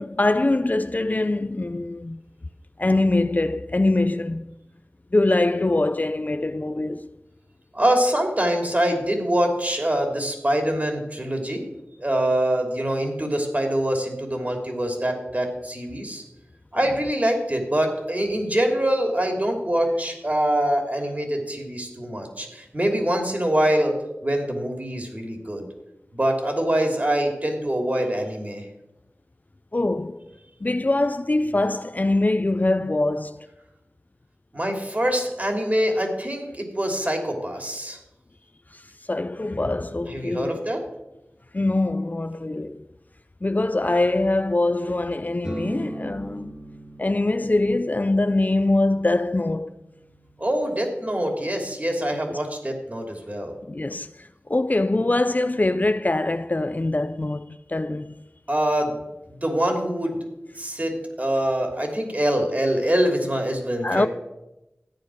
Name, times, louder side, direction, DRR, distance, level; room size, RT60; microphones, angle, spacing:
voice 1, 0.0-2.2 2.8-4.5 5.1-7.1 29.7-30.3 30.6-33.5 38.7-40.6 41.5-42.9 43.4-46.5 47.0-49.7 52.3-52.4 53.6-58.2 63.8-64.1, left 2 dB, 40° left, 0.5 m, -23 dB
voice 2, 7.7-11.6 12.0-16.2 16.7-25.7 26.1-28.7 34.5-38.0 40.1-40.8 50.4-53.5 58.5-59.0 59.3-60.2 60.5-64.1, right 1 dB, 35° right, 3.0 m, -24 dB
sound 1, 45.4-53.0, right 1 dB, 20° right, 2.2 m, -42 dB
13.5 x 9.7 x 6.3 m
wide cardioid pair, 60°, 4 cm